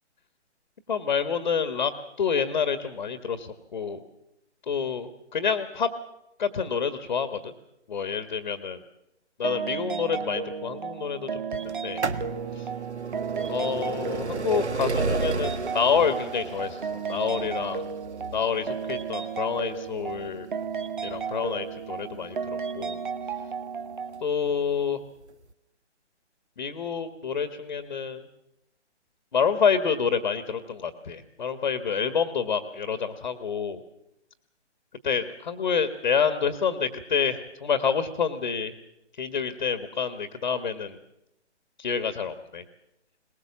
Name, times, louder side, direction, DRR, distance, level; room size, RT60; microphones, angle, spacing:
voice 1, 0.9-1.9 2.2-4.0 4.7-5.9 6.4-7.5 7.9-8.8 9.4-12.1 12.5-12.7 13.5-16.8 17.1-17.8 18.3-20.5 21.0-23.0 24.2-25.0 26.6-28.3 29.3-33.8 35.0-38.7 39.2-41.0 41.8-42.6, left 6 dB, 40° left, 10 dB, 1.7 m, -28 dB
sound 1, 9.4-24.2, right 6 dB, 45° right, 1.3 m, -34 dB
sound 2, 11.7-23.3 24.2-24.3 25.2-25.3 25.5-25.6, right 4 dB, 70° right, 1.5 m, -33 dB
22.0 x 20.5 x 7.3 m, 0.85 s
figure-of-eight pair, 145°, 35 cm